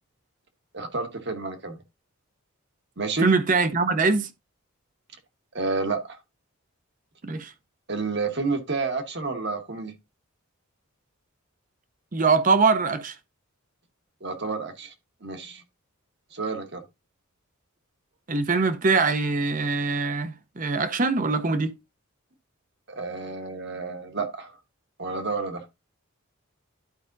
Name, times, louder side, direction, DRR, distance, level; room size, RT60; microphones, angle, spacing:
voice 1, 0.7-1.8 3.0-3.3 5.5-6.2 7.9-9.9 14.2-14.9 15.2-15.6 16.3-16.8 22.9-24.6 25.0-25.6, right 3 dB, 55° right, 1.2 m, -30 dB
voice 2, 3.2-4.3 7.2-7.5 12.1-13.1 18.3-21.7, right 4 dB, 35° right, 0.7 m, -23 dB
12.0 x 4.9 x 2.6 m
head